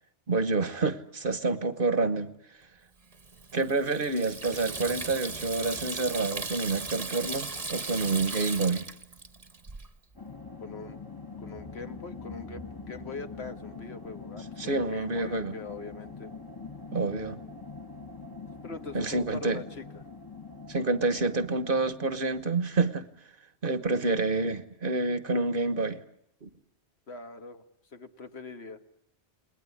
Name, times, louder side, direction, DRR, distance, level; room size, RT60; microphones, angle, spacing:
voice 1, 0.3-2.3 3.5-8.8 14.6-15.5 16.9-17.4 18.9-19.6 20.7-23.1 23.6-26.0 26.4-26.5, right 3 dB, 55° right, 12 dB, 1.5 m, -28 dB
Water tap faucet / Sink (filling or washing), 3.1-9.9, right 3 dB, 35° right, 1.3 m, -37 dB
sound 1, 10.2-22.7, left 4 dB, 20° left, 1.3 m, -44 dB
voice 2, 10.6-11.0 11.4-16.3 18.6-19.8 27.1-27.6 27.9-28.8, left 3 dB, 70° left, 7 dB, 1.8 m, -42 dB
29.0 x 20.0 x 9.8 m, 0.77 s
omnidirectional pair, 1.1 m